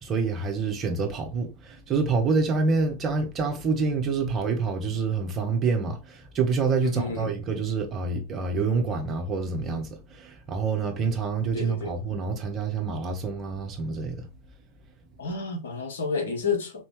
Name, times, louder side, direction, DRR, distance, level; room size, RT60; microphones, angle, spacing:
voice 1, 0.0-14.2, right 4 dB, 25° right, 1.1 m, -27 dB
voice 2, 6.8-7.3 11.5-12.0 15.2-16.7, left 5 dB, 65° left, 1.1 m, -30 dB
4.2 x 3.0 x 3.1 m
figure-of-eight pair, 90°, 0 cm